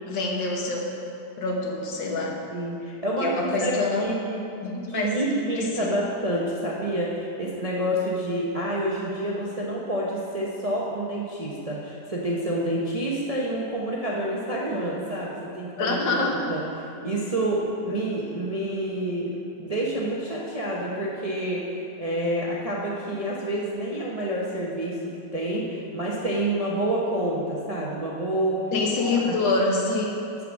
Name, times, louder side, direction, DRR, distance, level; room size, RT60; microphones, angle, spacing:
voice 1, 0.1-0.8 1.4-2.4 3.2-4.1 4.6-5.2 5.6-5.9 15.8-16.5 28.7-30.2, left 3 dB, 80° left, -1 dB, 1.9 m, -26 dB
voice 2, 2.5-3.3 3.6-3.7 4.0-4.4 4.9-19.3 19.6-28.7 29.4-29.5, right 1 dB, 35° right, -4 dB, 0.5 m, -28 dB
7.7 x 6.8 x 6.1 m, 2.7 s
omnidirectional pair, 2.0 m